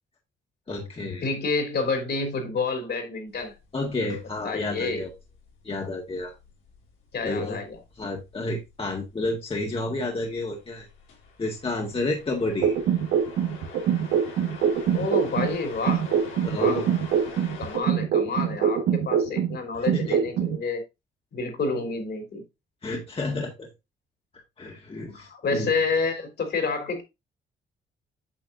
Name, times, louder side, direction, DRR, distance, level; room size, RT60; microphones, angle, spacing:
voice 1, 0.7-1.3 3.7-5.1 5.6-6.3 7.2-7.6 8.0-10.9 11.4-12.7 16.4-16.9 19.7-20.2 22.8-23.7 24.6-25.7, left 2 dB, 30° left, 1.7 m, -30 dB
voice 2, 1.2-3.6 4.4-5.1 7.1-7.8 14.9-16.1 16.5-16.8 17.6-20.8 21.3-22.4 25.1-27.0, left 4 dB, 55° left, 3.4 m, -29 dB
sound 1, 3.3-17.8, left 5 dB, 85° left, 2.8 m, -46 dB
sound 2, 12.6-15.6 15.9-19.6 19.9-20.6, right 8 dB, 85° right, 1.4 m, -23 dB
8.7 x 6.3 x 2.6 m
cardioid pair, 90°, 20 cm